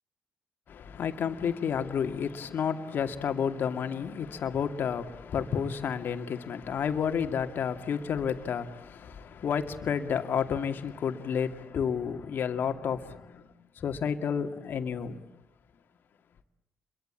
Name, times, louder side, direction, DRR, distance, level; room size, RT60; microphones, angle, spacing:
voice 1, 0.7-13.4 13.8-15.2, left 7 dB, 60° left, 2.3 m, -31 dB
30.0 x 23.0 x 8.7 m
supercardioid pair, 55°, 4 cm